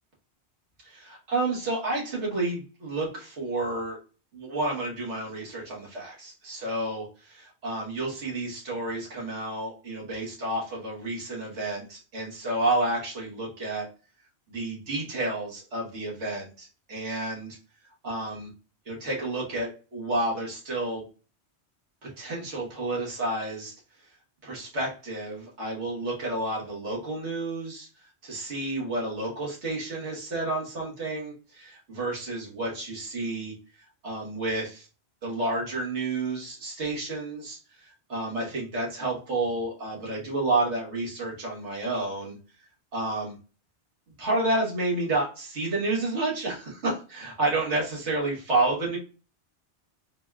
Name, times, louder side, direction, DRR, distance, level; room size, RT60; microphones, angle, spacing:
voice 1, 0.8-4.0 4.3-13.9 14.5-17.6 18.0-18.5 18.9-21.0 22.0-23.7 24.4-27.9 28.2-33.5 34.0-34.9 35.2-42.4 42.9-43.4 44.2-49.0, right 2 dB, 85° right, -3 dB, 1.4 m, -30 dB
3.5 x 2.2 x 2.3 m, 0.35 s
omnidirectional pair, 1.1 m